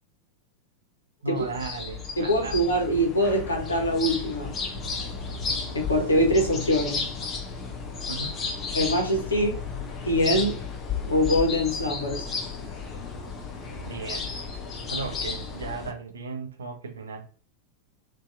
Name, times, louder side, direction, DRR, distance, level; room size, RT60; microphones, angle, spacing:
voice 1, 1.2-2.5 8.1-8.4 13.8-14.3 14.9-17.3, right 4 dB, 70° right, 0.4 m, -35 dB
sound 1, 1.4-15.9, left 5 dB, 25° left, 0.5 m, -33 dB
voice 2, 2.2-4.6 5.7-7.1 8.7-9.6 10.0-10.6 11.1-12.3, equal, 75° left, 0.6 m, -23 dB
2.6 x 2.2 x 2.3 m
figure-of-eight pair, 90°, 0 cm